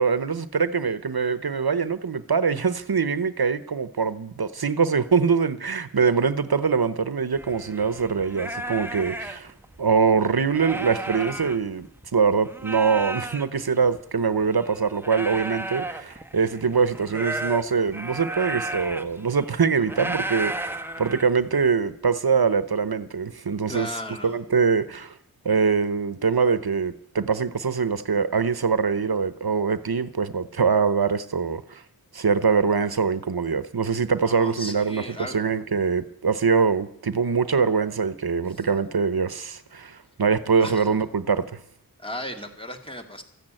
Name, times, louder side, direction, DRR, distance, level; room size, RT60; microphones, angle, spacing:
voice 1, 0.0-9.5 9.8-11.9 12.1-23.9 24.2-25.2 25.4-31.8 32.1-41.6, right 5 dB, 80° right, 0.9 m, -23 dB
sound 1, 7.3-12.1 12.4-21.7, right 2 dB, 5° right, 1.2 m, -34 dB
voice 2, 23.7-24.4 34.2-35.4 38.5-38.6 40.6-40.9 42.0-43.2, left 1 dB, 15° left, 2.4 m, -35 dB
14.0 x 10.5 x 9.0 m
wide cardioid pair, 40°, 36 cm